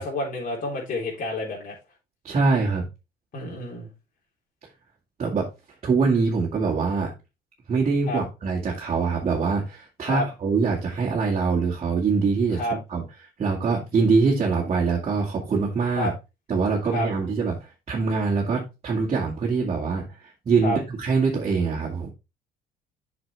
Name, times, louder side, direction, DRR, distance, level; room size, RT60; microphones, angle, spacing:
voice 1, 0.0-1.7 3.3-3.9 8.1-8.2 10.0-10.3 12.5-12.7 16.0-16.1 16.9-17.1 20.6-20.8, left 1 dB, 50° left, -3 dB, 3.7 m, -29 dB
voice 2, 2.2-2.9 5.2-5.5 5.8-7.1 7.7-12.6 12.9-13.0 13.4-16.1 16.5-22.1, right 4 dB, 40° right, -3 dB, 2.3 m, -24 dB
7.9 x 6.1 x 3.4 m, 0.26 s
cardioid pair, 110°, 17 cm